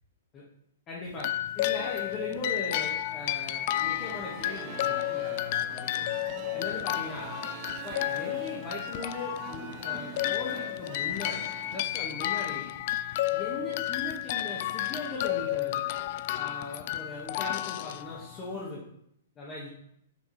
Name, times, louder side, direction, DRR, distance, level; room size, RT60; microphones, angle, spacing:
voice 1, 0.9-6.2 6.5-7.4 7.8-12.7 13.3-15.8 16.3-18.8 19.4-19.7, left 3 dB, 25° left, -5 dB, 1.9 m, -39 dB
sound 1, 1.2-18.6, left 14 dB, 45° left, 0.4 m, -32 dB
sound 2, 3.7-11.8, right 9 dB, 40° right, 0.6 m, -45 dB
6.9 x 6.0 x 4.3 m, 0.74 s
figure-of-eight pair, 115°, 0 cm